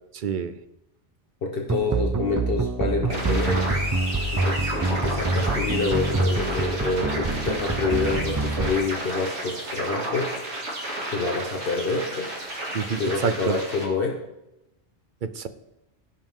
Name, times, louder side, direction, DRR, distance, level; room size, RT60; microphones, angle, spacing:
voice 1, 0.1-0.6 12.7-13.6 15.2-15.5, right 6 dB, 55° right, 12 dB, 0.7 m, -27 dB
voice 2, 1.4-3.8 4.3-10.3 11.1-12.3 13.0-14.2, left 3 dB, 55° left, 2 dB, 1.2 m, -27 dB
sound 1, 1.7-8.7, right 3 dB, 30° right, 0.3 m, -26 dB
sound 2, 3.1-13.8, right 1 dB, 80° right, 2.7 m, -32 dB
16.5 x 5.6 x 3.7 m, 0.90 s
omnidirectional pair, 1.2 m